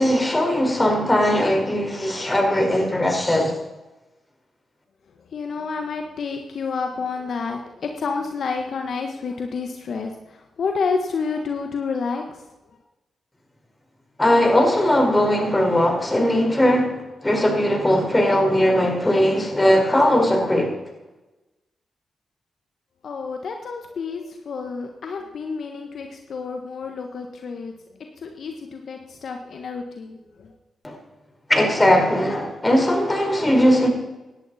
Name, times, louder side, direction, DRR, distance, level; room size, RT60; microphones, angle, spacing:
voice 1, 0.0-3.5 14.2-20.7 30.8-30.9 31.5-33.9, left 1 dB, 20° left, 2 dB, 4.8 m, -19 dB
voice 2, 5.3-12.4 23.0-27.7 28.2-30.5, left 5 dB, 65° left, 4 dB, 1.3 m, -29 dB
17.5 x 10.5 x 4.2 m, 1.1 s
supercardioid pair, 45°, 0 cm